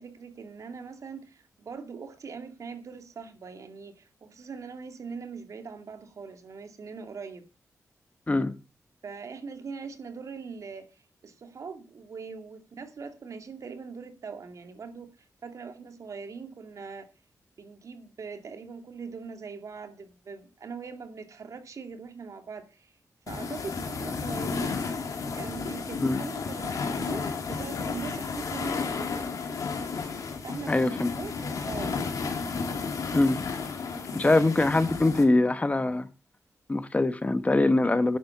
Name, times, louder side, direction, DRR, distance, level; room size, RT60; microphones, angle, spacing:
voice 1, 0.0-7.5 9.0-10.9 11.2-15.1 15.4-17.1 17.6-22.9 23.3-24.8 25.3-29.2 30.4-32.0 33.9-34.5, right 5 dB, 70° right, 2.3 m, -41 dB
sound 1, 23.3-35.2, left 4 dB, 85° left, 2.5 m, -33 dB
voice 2, 30.7-31.1 33.1-33.4 34.1-36.1 36.7-38.2, left 2 dB, 25° left, 1.0 m, -23 dB
10.5 x 7.5 x 7.1 m
wide cardioid pair, 95°, 6 cm